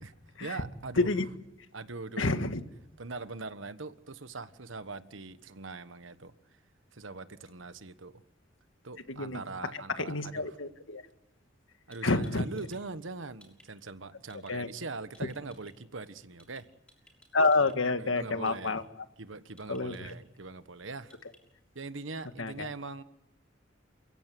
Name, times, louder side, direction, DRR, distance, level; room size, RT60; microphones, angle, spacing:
voice 1, 0.0-1.1 1.7-2.5 3.0-6.6 6.9-8.2 8.8-10.4 11.9-16.7 18.0-18.8 19.2-21.2 21.7-23.0, right 3 dB, 90° right, 12 dB, 1.3 m, -42 dB
voice 2, 2.2-2.6 9.1-9.4 9.7-11.0 12.0-12.4 14.5-14.7 17.3-18.8 19.7-20.1 22.4-22.7, left 3 dB, 90° left, 8 dB, 1.8 m, -28 dB
sound 1, 11.6-11.7 11.9-12.8 13.1-13.7 14.3-14.5 15.1-15.7 16.4-16.6 16.9-17.8 18.5-18.7 19.6-20.1 21.1-21.4, left 1 dB, 5° left, 6.5 m, -58 dB
29.0 x 16.0 x 9.5 m, 0.91 s
head